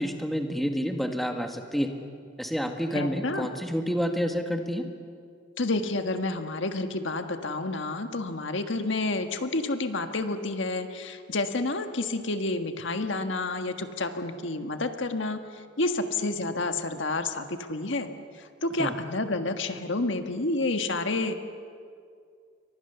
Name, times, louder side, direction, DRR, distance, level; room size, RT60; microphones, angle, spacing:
voice 1, 0.0-1.9 2.4-4.8 18.8-18.9, equal, ahead, 4 dB, 1.7 m, -29 dB
voice 2, 2.9-3.5 5.6-21.3, left 2 dB, 70° left, 6 dB, 1.6 m, -29 dB
29.5 x 24.0 x 7.0 m, 2.2 s
head